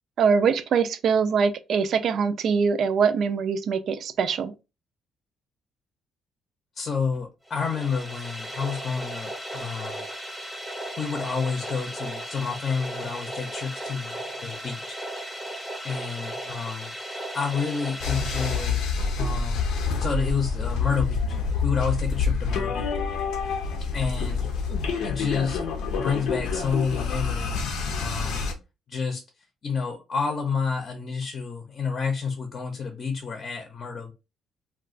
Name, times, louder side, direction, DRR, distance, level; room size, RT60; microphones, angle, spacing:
voice 1, 0.2-4.5, right 6 dB, 60° right, 0.3 m, -23 dB
voice 2, 6.8-10.0 11.0-15.0 15.8-16.9 17.3-18.8 19.1-19.7 20.0-22.9 23.9-24.5 25.0-25.6 25.9-28.5 28.9-29.2 29.6-34.1, left 5 dB, 40° left, 0.6 m, -29 dB
sound 1, 7.5-19.4, equal, ahead, 0.7 m, -36 dB
sound 2, 18.0-28.5, left 5 dB, 85° left, 0.5 m, -27 dB
2.4 x 2.3 x 3.7 m
cardioid pair, 115°, 0 cm